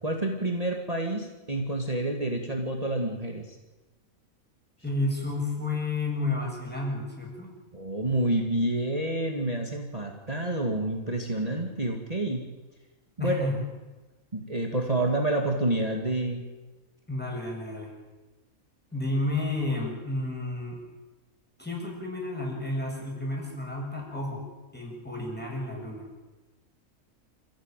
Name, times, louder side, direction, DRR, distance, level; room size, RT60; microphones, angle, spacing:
voice 1, 0.0-3.6 7.7-12.4 13.2-13.5 14.3-16.4, right 1 dB, 25° right, 1 dB, 2.4 m, -28 dB
voice 2, 4.8-7.5 13.2-13.6 17.1-17.9 18.9-20.8 21.6-24.4 24.7-26.1, left 2 dB, 5° left, -1 dB, 7.6 m, -31 dB
27.5 x 16.0 x 9.3 m, 1.2 s
omnidirectional pair, 1.5 m